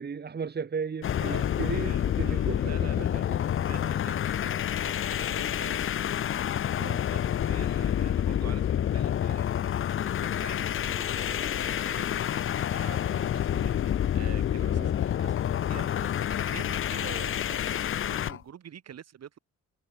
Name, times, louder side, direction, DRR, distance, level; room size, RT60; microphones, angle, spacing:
voice 1, 0.0-3.4 3.8-4.1 6.8-7.0 14.7-14.9, right 6 dB, 35° right, 1.7 m, -36 dB
sound 1, 1.0-18.4, left 10 dB, 45° left, 0.6 m, -28 dB
voice 2, 1.3-5.9 7.1-19.4, right 9 dB, 60° right, 4.1 m, -47 dB
cardioid pair, 90°, 30 cm